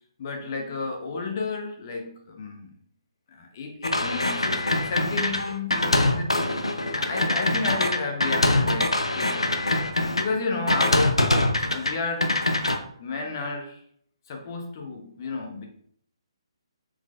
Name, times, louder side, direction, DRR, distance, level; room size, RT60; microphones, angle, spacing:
voice 1, 0.2-2.7 3.3-6.5 6.9-9.5 10.2-11.3 11.6-12.5 13.0-13.8 14.3-15.6, left 3 dB, 40° left, 1 dB, 0.8 m, -32 dB
sound 1, 3.8-10.2 10.7-11.9 12.2-12.8, left 2 dB, 80° left, 0.5 m, -23 dB
4.4 x 4.0 x 2.4 m, 0.64 s
figure-of-eight pair, 135°, 3 cm